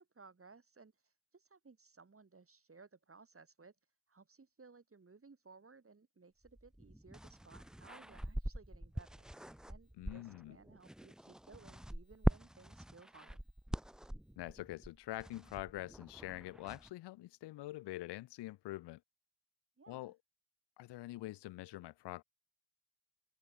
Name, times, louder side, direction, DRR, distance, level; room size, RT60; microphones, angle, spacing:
voice 1, 0.0-3.8 4.1-13.4 19.8-20.1, right 4 dB, 30° right, 3.5 m, -60 dB
sound 1, 6.4-16.9, right 1 dB, ahead, 0.4 m, -42 dB
voice 2, 10.0-10.6 14.4-19.0 19.9-20.2 20.8-22.2, left 17 dB, 70° left, 0.8 m, -45 dB
supercardioid pair, 50°, 43 cm